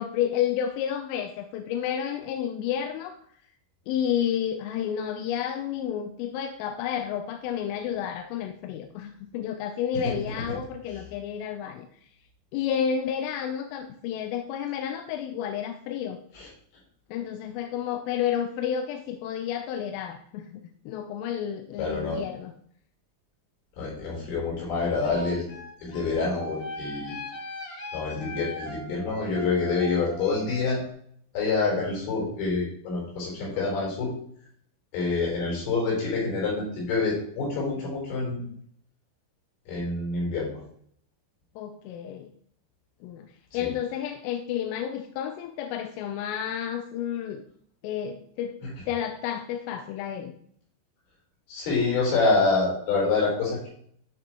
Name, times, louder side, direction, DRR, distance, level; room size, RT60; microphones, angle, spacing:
voice 1, 0.0-3.2 3.9-11.9 12.5-16.2 17.1-22.5 41.6-42.3 43.0-47.4 47.8-48.6 48.9-50.3, left 9 dB, 90° left, 6 dB, 3.2 m, -31 dB
voice 2, 21.8-22.2 23.8-25.5 25.8-27.2 27.9-30.8 31.3-34.1 34.9-38.4 39.7-40.6 43.6-43.7 51.5-53.7, left 4 dB, 65° left, -4 dB, 6.2 m, -27 dB
sound 1, 24.7-30.9, left 1 dB, 50° left, 1.7 m, -40 dB
13.5 x 6.0 x 3.0 m, 0.64 s
omnidirectional pair, 5.6 m